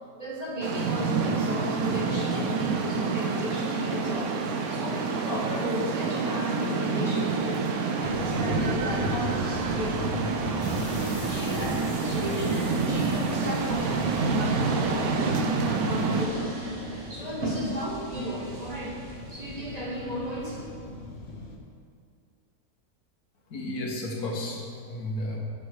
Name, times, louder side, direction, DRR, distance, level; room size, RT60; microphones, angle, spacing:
voice 1, 0.2-7.7 8.0-10.9 11.3-15.2 15.5-16.5 16.8-20.7, equal, 25° right, -6 dB, 1.7 m, -34 dB
sound 1, 0.6-16.3, right 4 dB, 80° right, 1.2 m, -28 dB
sound 2, 8.0-21.6, left 2 dB, 55° left, 1.3 m, -38 dB
sound 3, 13.6-19.7, right 1 dB, 50° right, 1.7 m, -36 dB
voice 2, 23.5-25.4, left 1 dB, 85° left, -1 dB, 1.8 m, -33 dB
11.5 x 5.5 x 4.9 m, 2.2 s
omnidirectional pair, 1.6 m